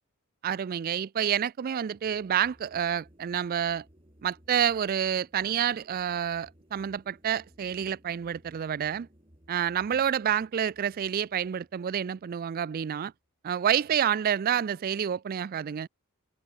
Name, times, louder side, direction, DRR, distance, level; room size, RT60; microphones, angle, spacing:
voice 1, 0.4-3.8 4.2-9.1 9.5-13.1 13.4-15.9, right 9 dB, 40° right, 0.3 m, -28 dB
sound 1, 1.8-13.1, equal, 25° right, 4.7 m, -60 dB
head